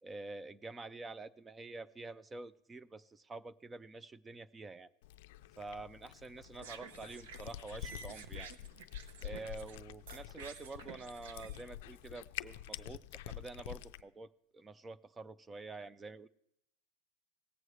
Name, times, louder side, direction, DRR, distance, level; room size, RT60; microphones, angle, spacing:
voice 1, 0.0-4.9 5.6-8.5 9.2-16.3, right 3 dB, 10° right, 18 dB, 0.3 m, -48 dB
Cat, 5.0-14.0, left 13 dB, 65° left, 0.4 m, -48 dB
sound 1, 6.4-9.8 10.1-11.6, right 6 dB, 75° right, 0.8 m, -51 dB
18.0 x 7.9 x 3.2 m, 0.78 s
supercardioid pair, 155°, 0 cm